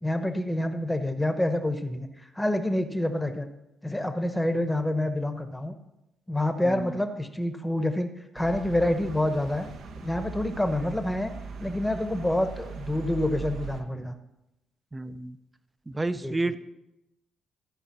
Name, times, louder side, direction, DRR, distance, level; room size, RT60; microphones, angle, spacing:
voice 1, 0.0-3.5 3.8-5.7 6.3-9.7 10.0-11.3 11.6-14.1 15.1-15.2 16.2-16.6, left 1 dB, 5° left, 7 dB, 1.0 m, -27 dB
sound 1, 8.4-13.8, right 5 dB, 70° right, 1.0 m, -40 dB
voice 2, 14.9-15.4 15.9-16.6, right 2 dB, 15° right, 13 dB, 0.5 m, -30 dB
14.0 x 4.9 x 5.9 m, 0.92 s
cardioid pair, 90°, 0 cm